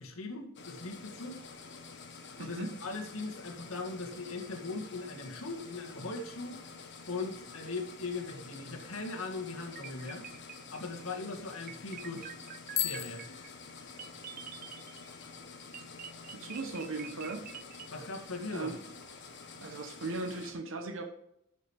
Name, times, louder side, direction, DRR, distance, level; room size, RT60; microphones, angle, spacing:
voice 1, 0.0-1.4 2.4-6.6 7.1-10.2 10.7-12.3 12.8-13.3 17.9-18.7, left 3 dB, 80° left, 2 dB, 1.8 m, -39 dB
sound 1, 0.6-20.5, left 4 dB, 60° left, 1.3 m, -49 dB
voice 2, 2.4-2.7 16.3-17.5 18.5-18.8 19.6-21.0, right 3 dB, 65° right, 4 dB, 1.0 m, -38 dB
sound 2, 9.6-11.0 11.7-15.3 15.7-17.9, right 9 dB, 45° right, 0.5 m, -47 dB
Bicycle bell, 12.7-14.4, left 11 dB, 30° left, 0.4 m, -37 dB
11.5 x 6.4 x 3.5 m, 0.78 s
head